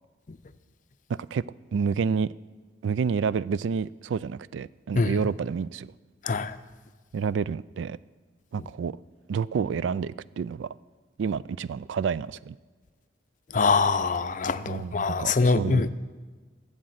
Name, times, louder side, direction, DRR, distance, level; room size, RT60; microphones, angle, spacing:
voice 1, 1.7-2.3 2.8-5.9 7.1-8.0 8.5-9.0 9.3-10.7 11.2-12.6 14.7-15.9, right 6 dB, 90° right, 0.3 m, -29 dB
voice 2, 13.5-15.9, left 4 dB, 45° left, 0.5 m, -24 dB
13.5 x 7.4 x 7.8 m
head